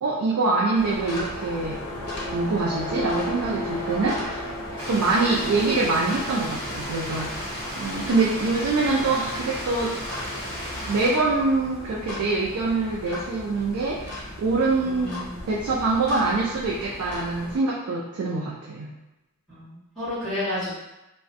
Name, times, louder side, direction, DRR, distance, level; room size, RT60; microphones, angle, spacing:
voice 1, 0.0-1.8 2.3-4.4 4.9-7.4 7.8-9.9 10.9-15.2 15.5-18.9, right 3 dB, 70° right, -4 dB, 0.4 m, -24 dB
sound 1, 0.7-17.6, left 1 dB, 50° left, 0.7 m, -35 dB
Stream, 4.8-11.1, equal, 25° left, 1.2 m, -34 dB
voice 2, 14.8-15.4 19.5-20.7, left 1 dB, ahead, -16 dB, 1.1 m, -31 dB
2.4 x 2.1 x 2.5 m, 0.97 s
head